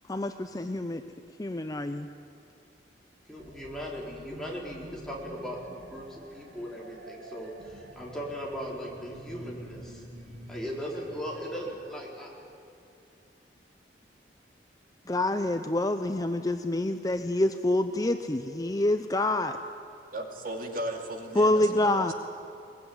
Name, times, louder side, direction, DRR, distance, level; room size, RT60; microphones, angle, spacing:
voice 1, 0.1-1.0 1.4-2.1 15.1-19.6 21.3-22.1, left 1 dB, 20° left, 8 dB, 0.6 m, -27 dB
voice 2, 3.3-10.0 10.5-12.3, equal, 5° left, -4 dB, 4.3 m, -38 dB
sound 1, 3.4-11.8, right 1 dB, 80° right, 2.9 m, -48 dB
voice 3, 20.1-22.1, right 1 dB, 50° right, 2 dB, 2.7 m, -36 dB
22.5 x 20.0 x 9.6 m, 2.6 s
head